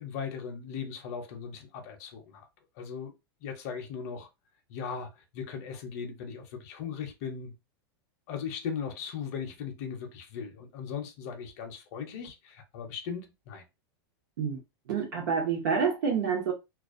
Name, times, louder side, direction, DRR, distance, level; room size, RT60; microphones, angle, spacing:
voice 1, 0.0-2.4 2.8-3.1 3.4-4.3 4.7-7.5 8.3-13.6, left 6 dB, 40° left, 0.6 m, -38 dB
voice 2, 14.9-16.5, right 6 dB, 50° right, 0.7 m, -28 dB
2.3 x 2.1 x 2.4 m
supercardioid pair, 175°, 13 cm